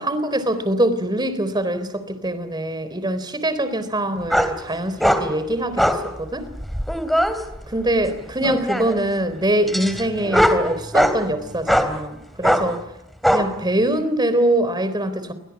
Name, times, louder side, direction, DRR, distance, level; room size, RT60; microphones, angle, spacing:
voice 1, 0.0-6.5 7.7-12.8 13.3-15.3, right 1 dB, 20° right, 12 dB, 3.8 m, -23 dB
sound 1, 4.3-4.5 5.0-5.2 5.8-6.0 6.6-7.3 8.4-9.0 9.7-11.2 11.7-11.9 12.4-12.6 13.2-13.4, equal, ahead, 3.2 m, -19 dB
29.5 x 24.5 x 7.3 m, 0.84 s
head